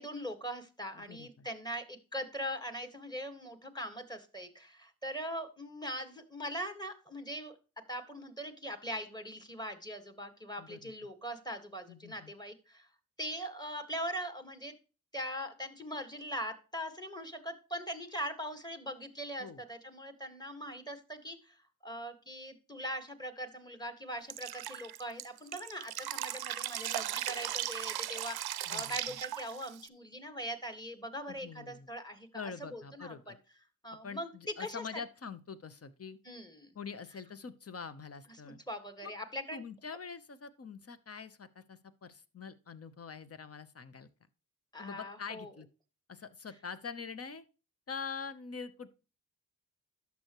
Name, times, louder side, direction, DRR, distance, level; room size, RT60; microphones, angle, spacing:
voice 1, 0.0-7.6 7.9-12.9 13.2-14.7 15.1-32.3 32.6-33.1 33.8-34.8 36.3-36.7 38.4-39.6 44.7-45.5, equal, 10° left, 7 dB, 1.8 m, -41 dB
voice 2, 0.9-1.5 10.6-10.9 11.9-12.3 19.4-19.6 28.7-28.9 31.3-31.9 32.3-33.4 34.0-36.2 36.7-38.6 39.0-39.1 39.5-44.1 44.8-45.7 46.1-47.4 47.9-48.9, left 5 dB, 40° left, 13 dB, 1.0 m, -44 dB
Drip, 24.3-29.9, right 12 dB, 80° right, 0.6 m, -37 dB
11.5 x 7.0 x 3.1 m, 0.34 s
cardioid pair, 55°, 37 cm